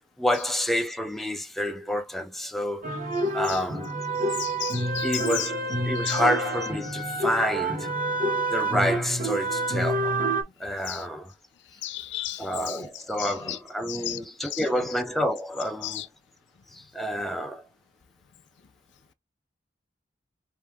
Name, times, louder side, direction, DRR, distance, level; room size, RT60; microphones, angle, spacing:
voice 1, 0.2-2.9 3.3-4.0 5.0-7.9 8.5-10.2 10.6-11.3 12.4-16.0 16.9-17.6, equal, ahead, 0.4 m, -28 dB
sound 1, 2.8-10.4, right 1 dB, 45° right, 1.2 m, -28 dB
voice 2, 4.4-5.5 6.0-6.2 10.9-11.0 11.8-12.9 13.2-13.6 13.9-14.6 15.8-16.1, left 14 dB, 70° left, 0.5 m, -34 dB
4.6 x 2.7 x 3.4 m
head